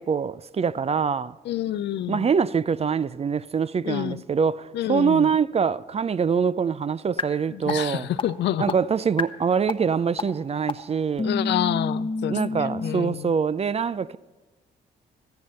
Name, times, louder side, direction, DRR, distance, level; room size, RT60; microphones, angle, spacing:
voice 1, 0.0-1.4 2.1-8.1 8.6-11.3 12.3-14.2, right 6 dB, 35° right, 0.4 m, -24 dB
voice 2, 1.5-2.3 3.8-4.2 4.7-5.3 7.5-8.7 11.2-13.3, left 12 dB, 75° left, 0.4 m, -28 dB
sound 1, 7.2-7.3 7.7-7.8 8.2-8.3 8.7-8.8 9.2-9.3 9.7-9.8 10.2-10.3 10.7-10.8 11.2-12.9, left 3 dB, 30° left, 0.9 m, -27 dB
13.5 x 10.5 x 5.5 m
supercardioid pair, 55°, 18 cm